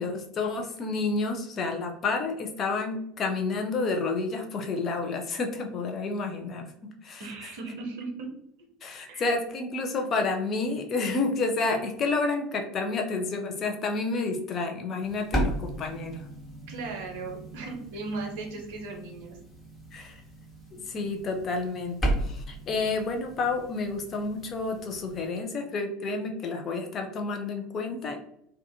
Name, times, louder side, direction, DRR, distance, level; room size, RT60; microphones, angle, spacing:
voice 1, 0.0-7.3 8.8-16.3 19.9-20.2 20.7-28.2, left 3 dB, 35° left, 3 dB, 0.5 m, -30 dB
voice 2, 7.2-8.3 9.1-9.3 16.7-19.4, right 3 dB, 60° right, 1 dB, 0.7 m, -37 dB
sound 1, 15.0-25.3, right 1 dB, 15° left, 1.0 m, -35 dB
2.4 x 2.3 x 2.6 m, 0.75 s
figure-of-eight pair, 70°, 0 cm